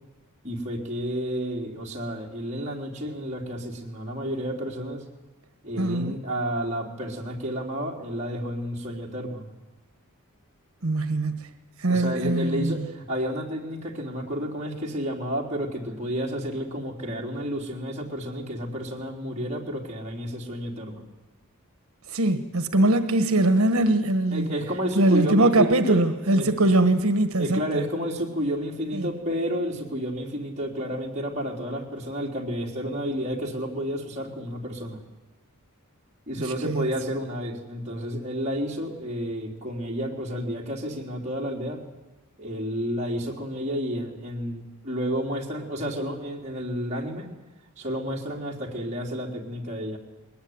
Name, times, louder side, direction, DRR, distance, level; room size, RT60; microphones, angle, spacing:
voice 1, 0.4-5.0 5.6-9.5 11.9-21.0 24.3-26.0 26.3-26.5 27.4-35.0 36.3-41.8 42.4-47.3 47.8-50.0, equal, 30° right, -2 dB, 4.0 m, -31 dB
voice 2, 5.8-6.2 10.8-11.5 11.8-12.9 22.1-24.5 24.9-27.6 28.9-29.1 36.4-36.9, right 2 dB, 70° right, 9 dB, 1.4 m, -22 dB
21.5 x 20.5 x 9.7 m, 1.1 s
head